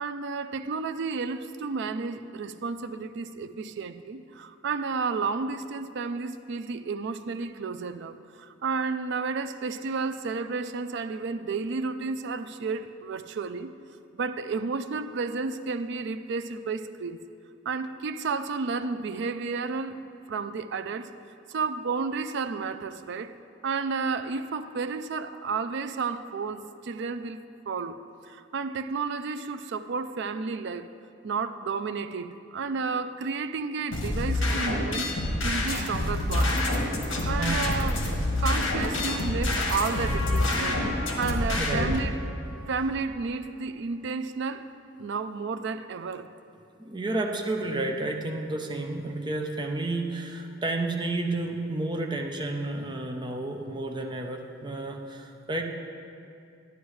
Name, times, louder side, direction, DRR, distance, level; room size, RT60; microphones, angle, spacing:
voice 1, 0.0-13.7 14.1-17.2 17.7-20.0 20.3-21.1 21.5-23.3 23.6-28.0 28.3-30.9 31.2-36.6 37.3-38.0 38.4-40.9 41.2-42.2 42.7-44.7 45.0-46.3, right 4 dB, 60° right, 11 dB, 0.4 m, -32 dB
sound 1, 33.9-42.0, left 1 dB, 80° left, 1.4 m, -27 dB
Trumpet, 39.6-44.3, left 1 dB, 50° left, 2.5 m, -40 dB
voice 2, 41.6-41.9 46.8-55.6, right 2 dB, 25° right, 2 dB, 0.7 m, -31 dB
11.0 x 11.0 x 3.2 m, 2.5 s
head